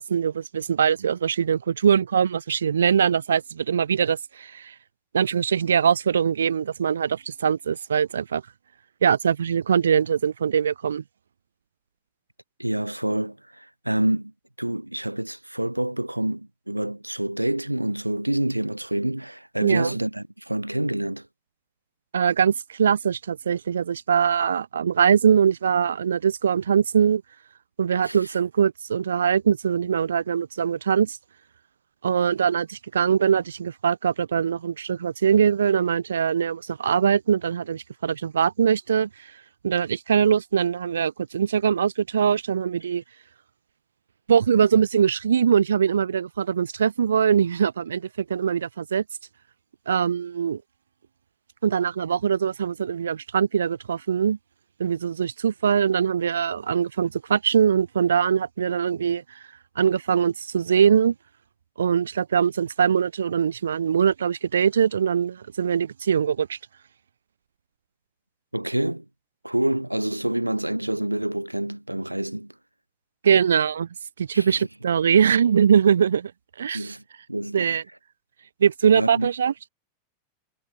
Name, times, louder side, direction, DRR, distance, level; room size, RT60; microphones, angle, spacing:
voice 1, 0.0-4.7 5.1-8.4 9.0-11.0 19.6-20.0 22.1-27.2 27.8-31.2 32.0-39.1 39.6-43.0 44.3-49.0 49.9-50.6 51.6-54.4 54.8-59.2 59.7-61.1 61.8-66.6 73.2-73.9 74.2-76.3 76.6-77.0 77.5-77.8 78.6-79.5, right 7 dB, 70° right, 1.4 m, -22 dB
voice 2, 12.6-14.3 14.6-21.2 28.0-28.2 68.5-69.0 69.4-72.5 74.3-74.7 76.7-77.0 77.3-77.8 78.9-79.3, right 1 dB, 85° right, 3.9 m, -27 dB
figure-of-eight pair, 90°, 0 cm